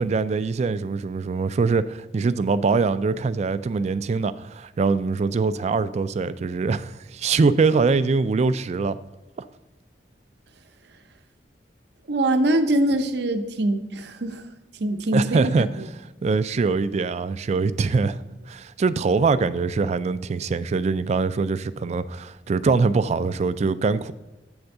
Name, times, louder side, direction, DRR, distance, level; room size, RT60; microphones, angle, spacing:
voice 1, 0.0-9.0 15.1-15.7 16.2-18.2 18.5-24.1, right 4 dB, 40° right, 0.3 m, -23 dB
voice 2, 12.1-14.4 14.8-15.9, right 1 dB, 65° right, 0.7 m, -23 dB
8.0 x 3.5 x 6.5 m
head